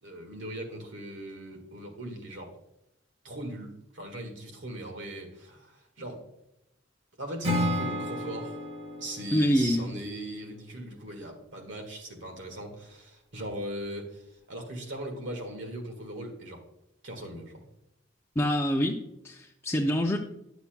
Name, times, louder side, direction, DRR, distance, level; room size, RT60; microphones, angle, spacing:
voice 1, 0.0-2.5 3.2-6.2 7.2-8.5 9.0-16.6 17.0-17.6, right 1 dB, 70° right, 3 dB, 1.7 m, -39 dB
Acoustic guitar / Strum, 7.4-10.6, left 1 dB, 35° right, 1.4 m, -33 dB
voice 2, 9.3-9.9 18.4-20.2, equal, 15° left, 0 dB, 0.5 m, -26 dB
10.0 x 6.9 x 2.2 m, 0.84 s
head